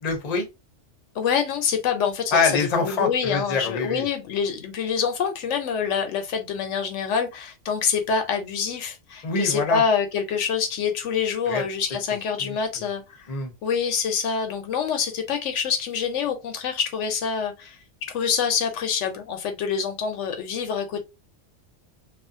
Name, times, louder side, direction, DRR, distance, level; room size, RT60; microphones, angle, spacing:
voice 1, 0.0-0.5 2.3-4.0 9.2-9.8 11.5-11.6 12.4-12.6 13.3-13.5, left 4 dB, 40° left, 0.7 m, -25 dB
voice 2, 1.1-2.4 2.8-13.3 13.6-17.8 18.1-21.0, left 6 dB, 80° left, 0.9 m, -26 dB
2.5 x 2.4 x 2.6 m
omnidirectional pair, 1.3 m